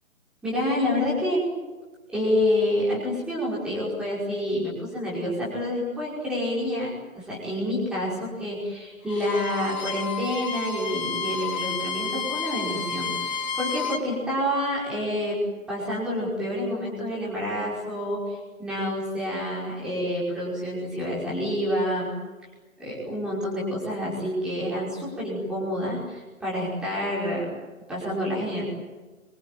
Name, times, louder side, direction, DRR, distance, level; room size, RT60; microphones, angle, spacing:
voice 1, 0.4-1.5 2.1-15.4 15.7-22.1 22.8-27.5 27.9-28.7, left 1 dB, ahead, -7 dB, 5.4 m, -28 dB
Bowed string instrument, 9.0-14.1, left 4 dB, 35° left, 3.3 m, -31 dB
26.0 x 24.0 x 9.2 m, 1.3 s
hypercardioid pair, 175°, 41 cm